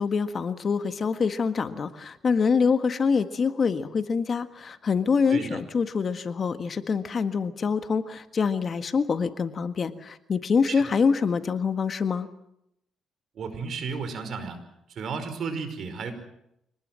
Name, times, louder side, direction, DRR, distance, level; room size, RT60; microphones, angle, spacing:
voice 1, 0.0-12.3, left 5 dB, 45° left, 9 dB, 1.6 m, -25 dB
voice 2, 13.3-14.6 14.9-16.1, right 5 dB, 60° right, 9 dB, 5.1 m, -33 dB
26.0 x 19.5 x 7.7 m, 0.80 s
cardioid pair, 90°, 0 cm